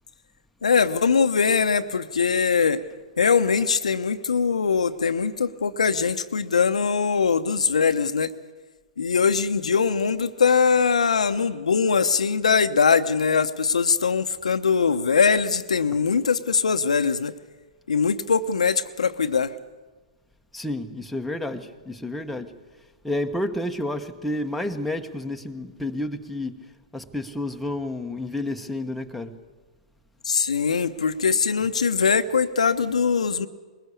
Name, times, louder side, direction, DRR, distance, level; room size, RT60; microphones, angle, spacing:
voice 1, 0.6-2.8 3.2-8.3 9.0-17.3 17.9-19.5 30.2-33.5, left 5 dB, 80° left, 9 dB, 0.9 m, -22 dB
voice 2, 20.5-22.5 23.0-26.6 26.9-29.4, left 1 dB, ahead, 3 dB, 1.2 m, -30 dB
21.5 x 20.0 x 8.4 m, 1.3 s
hypercardioid pair, 120°, 4 cm